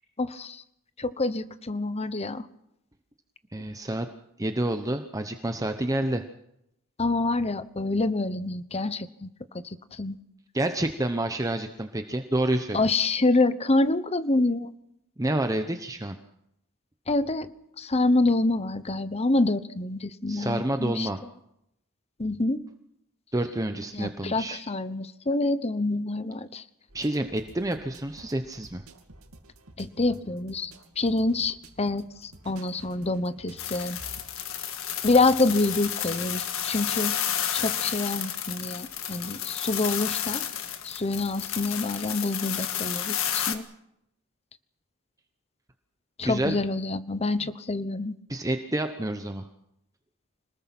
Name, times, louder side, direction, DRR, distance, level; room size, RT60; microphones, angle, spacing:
voice 1, 0.2-0.6 1.0-2.4 7.0-9.3 9.9-10.2 12.7-14.7 17.1-17.5 17.8-21.1 22.2-22.6 23.9-26.6 29.8-34.0 35.0-37.2 37.5-40.4 40.8-43.6 46.2-48.2, left 2 dB, 30° left, 14 dB, 1.0 m, -26 dB
voice 2, 3.5-4.1 4.4-6.2 10.5-12.8 15.2-16.2 20.3-21.2 23.3-24.6 26.9-28.8 46.2-46.6 48.3-49.5, right 1 dB, 15° right, 7 dB, 0.9 m, -28 dB
sound 1, 26.9-34.3, right 1 dB, 75° right, 2.6 m, -51 dB
sound 2, 33.6-43.6, left 10 dB, 65° left, 1.8 m, -31 dB
26.5 x 19.5 x 6.1 m, 0.80 s
head